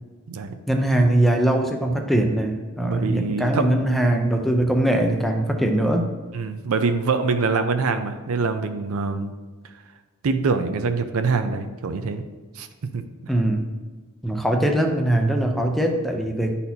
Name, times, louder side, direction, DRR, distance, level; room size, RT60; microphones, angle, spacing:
voice 1, 0.7-6.1 13.3-13.7 14.2-16.5, right 1 dB, ahead, 3 dB, 0.5 m, -21 dB
voice 2, 2.8-3.9 6.3-9.3 10.2-12.3 12.6-12.7 12.9-13.0, right 4 dB, 65° right, 9 dB, 0.5 m, -24 dB
10.5 x 4.2 x 2.8 m, 1.4 s
head